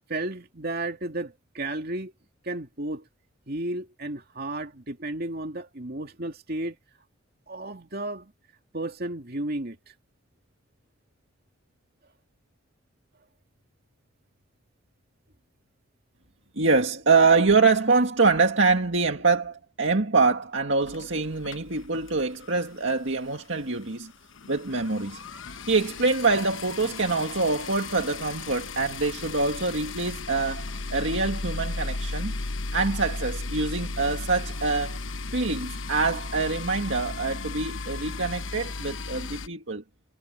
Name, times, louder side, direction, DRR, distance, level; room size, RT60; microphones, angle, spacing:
voice 1, 0.1-2.1 2.4-3.1 3.5-6.8 7.5-8.3 8.7-9.9, right 2 dB, 50° right, 2.7 m, -33 dB
voice 2, 16.6-24.1 24.5-25.2 25.7-32.4 32.7-35.0 35.3-39.8, right 4 dB, 70° right, 2.1 m, -25 dB
sound 1, 20.8-22.6 22.9-23.1 23.4-23.5 23.7-39.5, left 3 dB, 75° left, 1.1 m, -35 dB
head